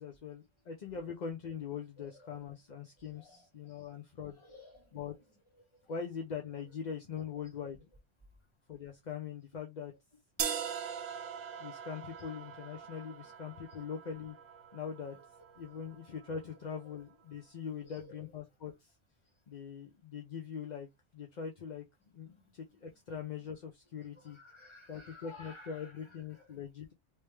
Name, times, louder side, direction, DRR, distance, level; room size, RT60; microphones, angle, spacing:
voice 1, 0.0-4.4 4.9-5.2 5.9-7.9 8.7-9.9 11.6-14.4 14.7-15.2 15.6-18.9 19.5-20.9 21.1-21.8 22.1-24.4 24.9-26.9, left 7 dB, 45° left, 0.6 m, -42 dB
voice 2, 2.0-2.4 3.0-3.8 4.2-5.0 5.8-5.9 10.4-10.5 15.1-15.2 16.9-17.0 17.7-18.3 24.2-26.1 26.3-26.6, left 2 dB, 25° left, 1.4 m, -55 dB
sound 1, 10.4-16.3, right 8 dB, 85° right, 1.0 m, -42 dB
3.2 x 3.0 x 3.2 m
omnidirectional pair, 1.2 m